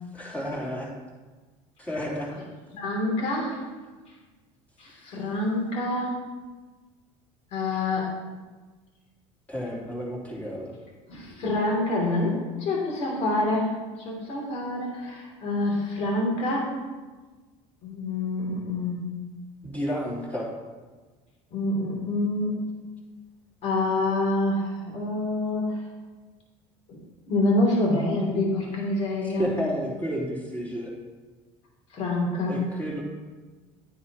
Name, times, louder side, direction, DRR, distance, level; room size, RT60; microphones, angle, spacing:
voice 1, 0.1-0.9 1.8-2.3 9.5-10.7 19.6-20.5 29.4-30.9 32.5-33.0, equal, 10° left, -5 dB, 3.2 m, -31 dB
voice 2, 2.7-3.6 4.8-6.2 7.5-8.1 11.1-13.7 14.0-16.7 17.8-19.1 21.5-22.5 23.6-25.8 26.9-27.0 27.3-29.5 31.9-32.6, left 2 dB, 55° left, -2 dB, 2.9 m, -26 dB
11.0 x 9.8 x 3.0 m, 1.3 s
supercardioid pair, 120°, 13 cm